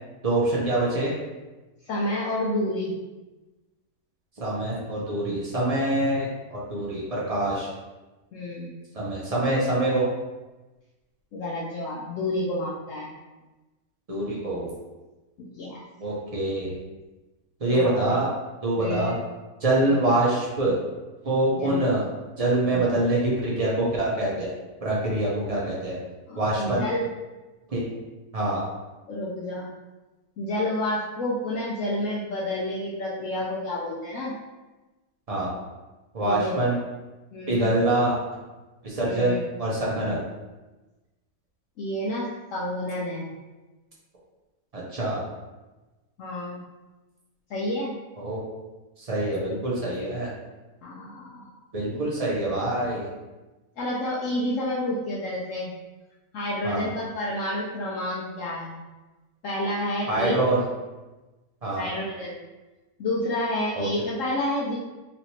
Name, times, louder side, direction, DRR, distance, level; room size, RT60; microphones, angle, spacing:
voice 1, 0.2-1.1 4.4-7.7 8.9-10.0 14.1-14.7 16.0-16.7 17.6-18.3 18.6-19.1 19.6-20.8 21.2-22.0 22.4-24.5 24.8-26.0 26.3-26.8 27.7-27.8 28.3-28.6 35.3-35.5 36.1-36.8 37.5-38.2 38.8-40.2 44.7-45.2 48.2-48.4 49.1-50.3 51.7-53.0 56.6-56.9 60.1-60.6 61.6-61.9 63.7-63.9, right 1 dB, 60° right, -5 dB, 0.3 m, -25 dB
voice 2, 1.9-2.9 8.3-8.8 11.3-13.1 15.4-15.8 17.7-18.2 18.8-19.2 19.8-20.0 21.5-22.0 22.6-23.0 26.3-27.1 29.1-29.7 30.4-34.3 36.3-36.6 37.3-37.7 39.0-39.4 40.0-40.2 41.8-43.3 46.2-46.6 47.5-47.9 50.8-51.5 51.9-52.1 53.8-55.7 56.3-58.8 59.4-60.4 61.8-62.4 63.0-64.8, left 1 dB, 65° left, -5 dB, 0.8 m, -30 dB
3.1 x 2.9 x 2.7 m, 1.1 s
omnidirectional pair, 1.6 m